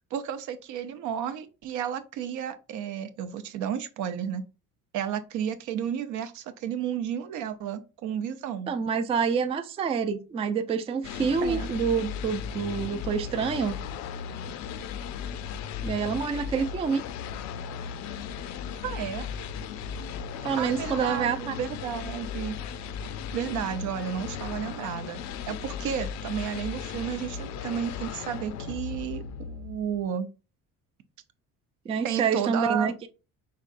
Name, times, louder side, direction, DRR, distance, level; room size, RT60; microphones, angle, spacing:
voice 1, 0.1-4.4 4.9-8.7 11.4-11.7 18.8-19.3 20.6-22.6 23.3-25.2 25.5-30.3 32.0-32.9, right 8 dB, 70° right, 11 dB, 0.7 m, -32 dB
voice 2, 8.7-13.8 15.8-17.0 20.4-21.5 31.9-32.9, right 6 dB, 20° right, 8 dB, 0.3 m, -27 dB
sound 1, 11.0-30.0, left 7 dB, 60° left, 0.5 m, -36 dB
5.1 x 3.6 x 2.5 m, 0.32 s
cardioid pair, 135°, 32 cm